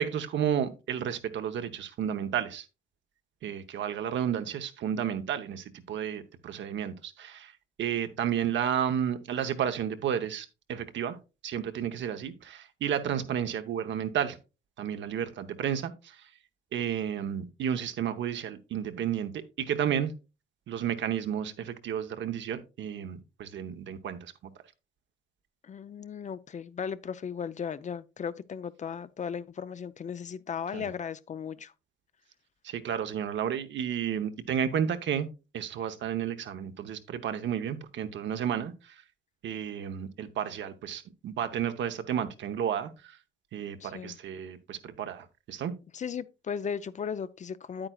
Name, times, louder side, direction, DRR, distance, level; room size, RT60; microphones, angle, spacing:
voice 1, 0.0-2.6 3.4-7.5 7.8-11.2 11.4-14.4 14.8-16.3 16.7-20.1 20.7-24.3 30.7-30.9 32.6-35.3 35.5-38.9 39.4-43.2 43.5-45.7, right 9 dB, 70° right, 0.9 m, -32 dB
voice 2, 25.6-31.7 43.8-44.2 45.9-47.9, left 7 dB, 40° left, 0.5 m, -36 dB
8.9 x 8.8 x 2.3 m
cardioid pair, 90°, 20 cm